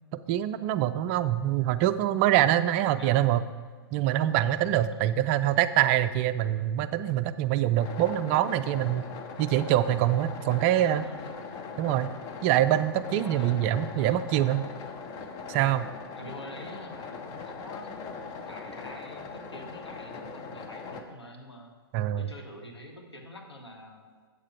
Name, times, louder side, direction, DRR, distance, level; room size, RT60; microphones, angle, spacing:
voice 1, 0.1-3.4 3.9-11.1 11.8-12.1 12.4-14.6 15.5-15.9 21.9-22.3, right 12 dB, 30° right, 13 dB, 0.4 m, -25 dB
sound 1, 7.8-21.0, left 5 dB, 30° left, 0.8 m, -40 dB
voice 2, 10.7-11.5 13.1-13.6 14.0-14.2 16.2-18.2 18.5-21.7 22.2-24.1, left 1 dB, 90° left, 2 dB, 1.5 m, -46 dB
8.4 x 7.3 x 4.4 m, 1.5 s
figure-of-eight pair, 115°, 13 cm